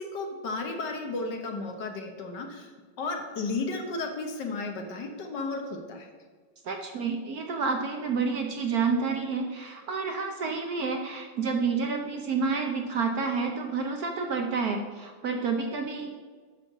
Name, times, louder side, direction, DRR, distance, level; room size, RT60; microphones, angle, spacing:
voice 1, 0.0-6.1, left 3 dB, 65° left, 3 dB, 1.5 m, -34 dB
voice 2, 6.6-16.1, right 4 dB, 60° right, 3 dB, 1.1 m, -29 dB
8.3 x 6.8 x 5.4 m, 1.5 s
omnidirectional pair, 2.2 m